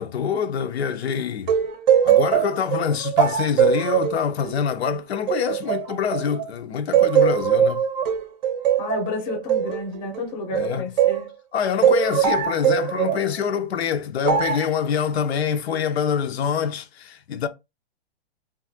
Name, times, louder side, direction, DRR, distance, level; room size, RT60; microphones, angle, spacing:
voice 1, 0.0-1.5 2.0-7.8 10.5-10.8 11.5-17.5, left 7 dB, 90° left, 0.6 m, -25 dB
sound 1, 1.5-6.5 6.9-11.3 11.8-13.3 14.2-14.7, right 9 dB, 45° right, 0.6 m, -21 dB
voice 2, 8.8-11.3, left 2 dB, 15° left, 0.6 m, -30 dB
2.5 x 2.4 x 2.7 m
hypercardioid pair, 155°, 31 cm